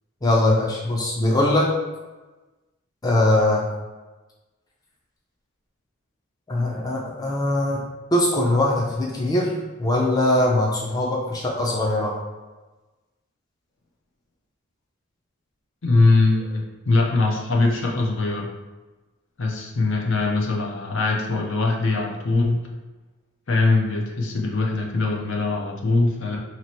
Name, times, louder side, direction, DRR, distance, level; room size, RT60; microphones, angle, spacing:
voice 1, 0.2-1.7 3.0-3.7 6.5-7.8 8.1-12.1, left 1 dB, 20° left, -3 dB, 0.5 m, -21 dB
voice 2, 15.8-18.5 19.4-22.7 23.5-26.4, left 3 dB, 65° left, -1 dB, 0.6 m, -22 dB
2.9 x 2.9 x 4.4 m, 1.2 s
head